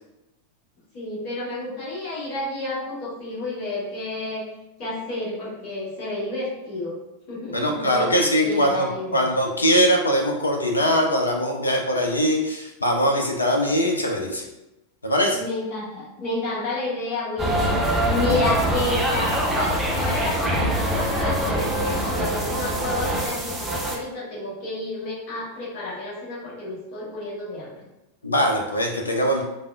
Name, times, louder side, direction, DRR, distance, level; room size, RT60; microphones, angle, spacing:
voice 1, 0.9-4.5 4.8-7.0 7.3-8.1 8.4-9.2 15.3-17.7 18.0-27.7, left 2 dB, 40° left, -8 dB, 1.2 m, -30 dB
voice 2, 7.5-14.5 15.0-15.4 28.2-29.4, equal, 80° left, 1 dB, 0.4 m, -21 dB
sound 1, 17.4-24.0, right 1 dB, 10° right, 0.5 m, -24 dB
3.3 x 2.4 x 2.2 m, 0.95 s
figure-of-eight pair, 90°, 0 cm